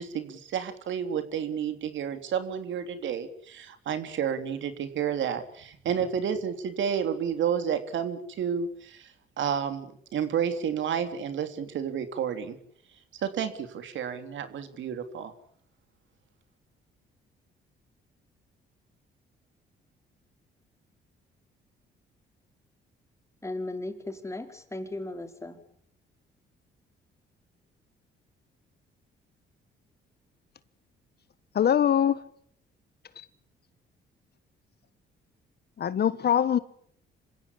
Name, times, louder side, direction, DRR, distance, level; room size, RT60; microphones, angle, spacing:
voice 1, 0.0-12.6 13.2-15.3, right 8 dB, 70° right, 3.4 m, -31 dB
voice 2, 23.4-25.6, left 2 dB, 15° left, 4.5 m, -36 dB
voice 3, 31.5-32.2 33.2-33.3 35.8-36.6, left 9 dB, 55° left, 1.4 m, -23 dB
26.5 x 16.0 x 9.9 m
cardioid pair, 90°, 20 cm